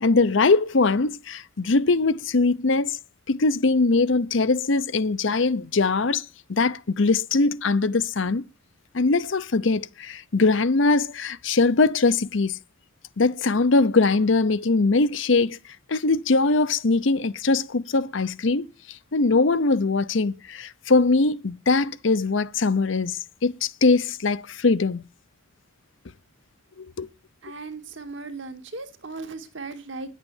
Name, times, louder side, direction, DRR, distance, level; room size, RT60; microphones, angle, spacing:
voice 1, 0.0-3.0 3.3-6.2 6.5-8.4 8.9-12.6 13.2-15.6 15.9-25.0 26.8-27.1, left 3 dB, 70° left, 0.7 m, -22 dB
voice 2, 27.4-30.1, right 3 dB, 65° right, 1.9 m, -37 dB
10.5 x 8.4 x 7.2 m
head